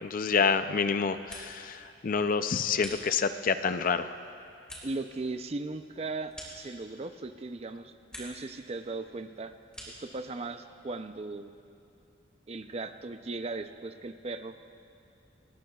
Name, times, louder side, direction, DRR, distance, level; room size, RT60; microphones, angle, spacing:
voice 1, 0.0-4.1, left 5 dB, 45° left, 10 dB, 0.5 m, -28 dB
sound 1, 1.0-1.8 2.1-3.5 4.0-7.2 7.6-8.5 8.8-10.2, equal, 5° left, 3.5 m, -48 dB
voice 2, 4.8-9.5 9.9-11.5 12.5-14.6, right 3 dB, 35° right, 9 dB, 0.5 m, -38 dB
25.5 x 19.5 x 2.4 m, 2.6 s
head